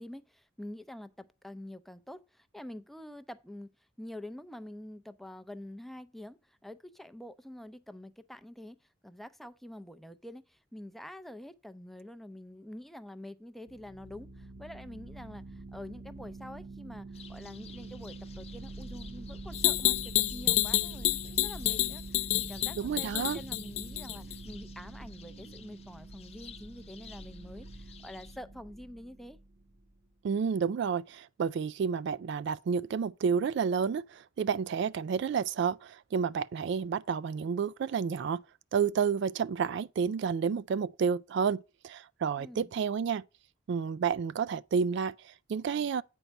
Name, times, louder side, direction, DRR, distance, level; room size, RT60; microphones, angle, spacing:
voice 1, 0.0-29.4 42.4-42.7, left 1 dB, ahead, 0.5 m, -47 dB
sound 1, 13.7-29.9, right 2 dB, 45° right, 0.7 m, -45 dB
sound 2, 17.1-28.4, left 8 dB, 35° left, 0.7 m, -53 dB
sound 3, 19.5-24.3, left 16 dB, 75° left, 0.3 m, -28 dB
voice 2, 22.7-23.4 30.2-38.4 38.7-43.2 43.7-46.0, right 6 dB, 60° right, 0.3 m, -30 dB
9.1 x 4.6 x 5.2 m
head